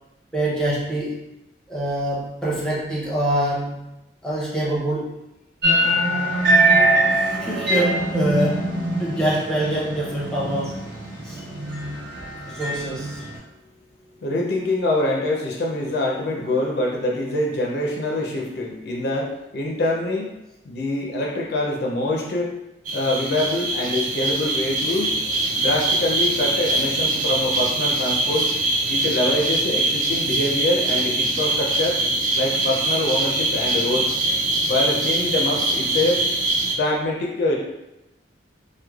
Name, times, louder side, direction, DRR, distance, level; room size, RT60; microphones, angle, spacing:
voice 1, 0.3-1.2 1.7-3.9 4.2-5.2 7.1-10.8 11.2-11.4 12.5-13.2, right 1 dB, 5° left, -6 dB, 0.6 m, -25 dB
sound 1, 5.6-13.4, right 1 dB, 65° right, 1.0 m, -22 dB
voice 2, 14.2-20.3 20.7-22.5 22.9-25.1 25.5-28.5 28.9-32.0 32.4-34.2 34.7-36.3 36.8-37.6, left 1 dB, 60° left, -1 dB, 0.4 m, -24 dB
sound 2, 22.8-36.7, right 2 dB, 45° right, 0.3 m, -23 dB
3.0 x 2.1 x 2.3 m, 0.93 s
head